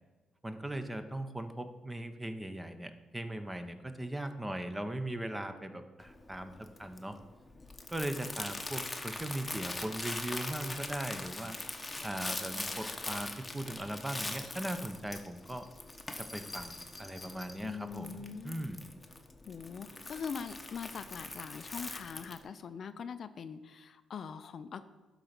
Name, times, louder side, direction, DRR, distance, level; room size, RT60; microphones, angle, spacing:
voice 1, 0.4-7.2 7.9-11.6 12.0-15.6 16.2-18.8, right 1 dB, 10° right, 8 dB, 0.8 m, -39 dB
Crumpling crinkling, 6.0-22.4, left 2 dB, 15° left, 1.0 m, -42 dB
voice 2, 17.6-18.7 19.5-24.9, left 6 dB, 55° left, 12 dB, 0.4 m, -42 dB
11.5 x 4.0 x 5.9 m, 1.2 s
cardioid pair, 90°, 0 cm